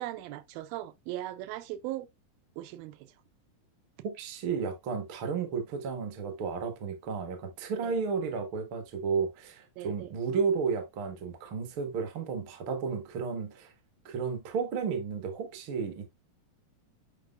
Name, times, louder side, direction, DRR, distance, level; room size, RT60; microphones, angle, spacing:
voice 1, 0.0-2.1 2.6-3.1 7.8-7.9 9.8-10.1, right 14 dB, 85° right, 2.5 m, -38 dB
voice 2, 4.0-13.7 14.0-16.0, right 5 dB, 55° right, 1.5 m, -33 dB
8.2 x 4.9 x 2.3 m
omnidirectional pair, 4.2 m